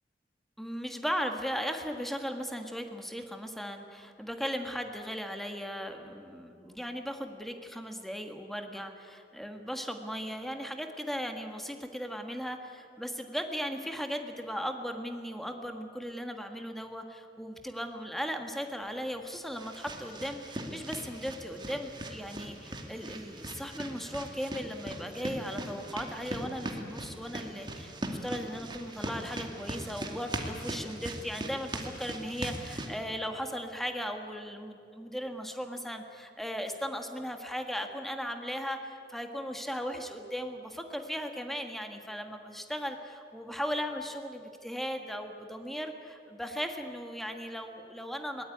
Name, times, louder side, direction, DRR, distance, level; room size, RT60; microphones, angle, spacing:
voice 1, 0.6-48.5, equal, ahead, 5 dB, 1.7 m, -37 dB
sound 1, 18.9-32.9, right 1 dB, 25° right, 2.5 m, -40 dB
22.0 x 19.0 x 9.4 m, 2.6 s
head